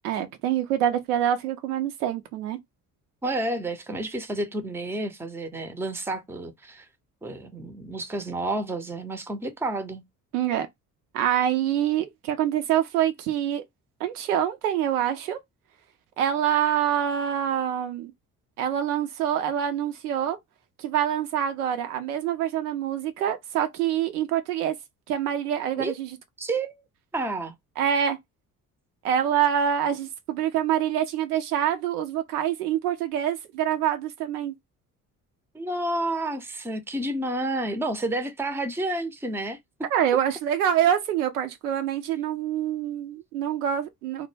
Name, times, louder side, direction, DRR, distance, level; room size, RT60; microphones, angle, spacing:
voice 1, 0.0-2.6 10.3-10.7 11.1-13.6 14.0-15.4 16.2-18.1 18.6-20.4 20.8-24.8 25.1-26.2 27.8-28.2 29.0-34.5 39.9-44.3, right 10 dB, 80° right, 0.6 m, -25 dB
voice 2, 3.2-6.9 7.2-10.0 25.8-25.9 26.4-26.8 27.1-27.5 35.5-39.6, right 2 dB, 5° right, 0.5 m, -30 dB
2.1 x 2.1 x 3.1 m
figure-of-eight pair, 45°, 45 cm